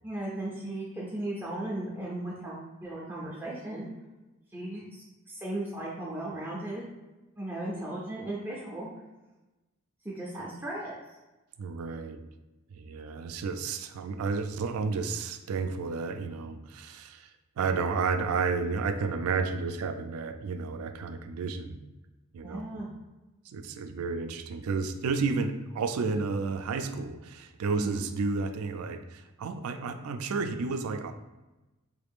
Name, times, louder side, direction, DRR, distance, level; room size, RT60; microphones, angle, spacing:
voice 1, 0.0-3.9 4.5-6.9 7.4-8.9 10.0-10.9 22.4-22.9 27.7-28.0, right 1 dB, 10° right, -6 dB, 0.5 m, -36 dB
voice 2, 11.6-12.2 12.7-17.3 17.6-21.8 22.3-22.8 23.5-31.1, right 4 dB, 80° right, 8 dB, 0.3 m, -31 dB
3.4 x 2.4 x 3.5 m, 1.1 s
head